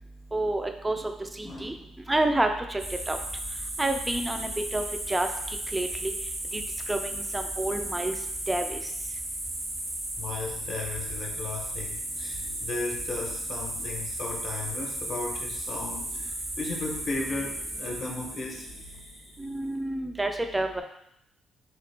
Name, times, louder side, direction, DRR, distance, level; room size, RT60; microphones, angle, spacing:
voice 1, 0.3-1.0 1.4-1.7 2.1-2.8 3.1-3.2 3.8-5.3 5.7-6.1 6.5-6.6 6.9-8.1 8.5-8.8 19.4-20.8, right 2 dB, 15° right, 5 dB, 0.3 m, -28 dB
voice 2, 1.4-1.8 10.2-19.3, left 3 dB, 50° left, 1 dB, 0.6 m, -36 dB
sound 1, 2.8-19.5, right 1 dB, 80° right, 1.3 m, -35 dB
2.9 x 2.4 x 3.3 m, 0.76 s
cardioid pair, 90°, 0 cm